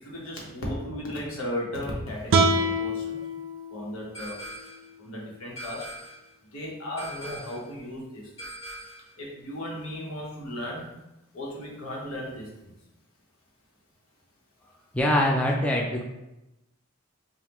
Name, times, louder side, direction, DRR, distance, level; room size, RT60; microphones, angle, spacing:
voice 1, 0.0-3.2 3.7-4.4 5.0-5.9 6.5-8.3 9.2-10.8 11.3-12.7, left 1 dB, 85° left, -3 dB, 1.1 m, -35 dB
sound 1, 2.3-5.5, right 2 dB, 70° right, 0.4 m, -27 dB
sound 2, 4.1-4.9 5.6-6.3 7.0-7.7 8.4-9.1, right 1 dB, 30° left, 1.3 m, -41 dB
voice 2, 14.9-16.0, left 1 dB, 5° left, -1 dB, 0.3 m, -23 dB
5.2 x 2.4 x 3.0 m, 0.95 s
head